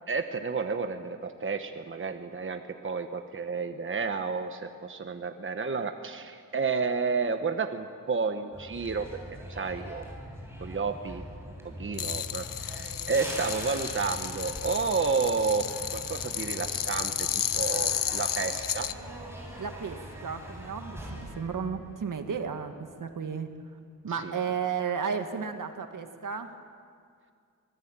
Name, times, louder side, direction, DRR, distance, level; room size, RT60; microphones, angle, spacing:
voice 1, 0.1-9.1 9.5-10.1 10.6-11.2 11.6-15.7 15.9-17.1 17.5-18.9 24.2-24.3, right 5 dB, 40° right, 7 dB, 1.2 m, -31 dB
sound 1, 8.5-22.5 22.8-23.1, equal, 10° right, 7.6 m, -42 dB
sound 2, 11.9-18.9, left 9 dB, 80° left, 0.8 m, -32 dB
voice 2, 19.6-22.7 23.0-23.8 24.0-26.6, right 6 dB, 70° right, 6 dB, 1.9 m, -33 dB
25.5 x 19.5 x 8.9 m, 2.2 s
wide cardioid pair, 100°, 33 cm